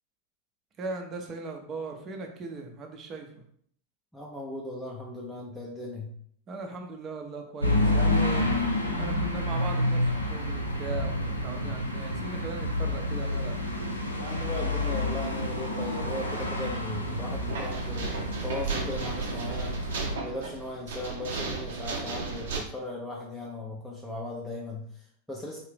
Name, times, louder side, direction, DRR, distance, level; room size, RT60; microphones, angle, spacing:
voice 1, 0.8-3.4 6.5-13.6, right 3 dB, 30° right, 3 dB, 0.8 m, -39 dB
voice 2, 4.1-6.1 11.4-11.8 12.1-12.3 14.2-25.6, left 1 dB, 5° left, -4 dB, 0.7 m, -38 dB
sound 1, 7.6-20.2, left 1 dB, 90° left, 0.6 m, -29 dB
sound 2, 17.4-22.6, right 4 dB, 60° right, 0.8 m, -35 dB
4.4 x 2.8 x 3.4 m, 0.63 s
figure-of-eight pair, 90°, 0 cm